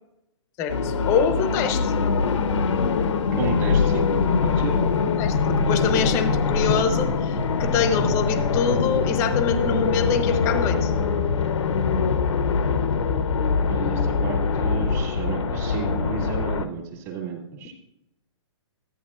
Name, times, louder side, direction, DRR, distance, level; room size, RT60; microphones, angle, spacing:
voice 1, 0.6-1.9 5.1-10.9, left 6 dB, 20° left, 8 dB, 0.8 m, -25 dB
sound 1, 0.7-16.7, left 5 dB, 80° left, 0.9 m, -23 dB
voice 2, 3.4-4.7 13.7-17.7, right 5 dB, 35° right, 0 dB, 2.0 m, -32 dB
13.0 x 8.9 x 2.4 m, 0.86 s
hypercardioid pair, 160°, 15 cm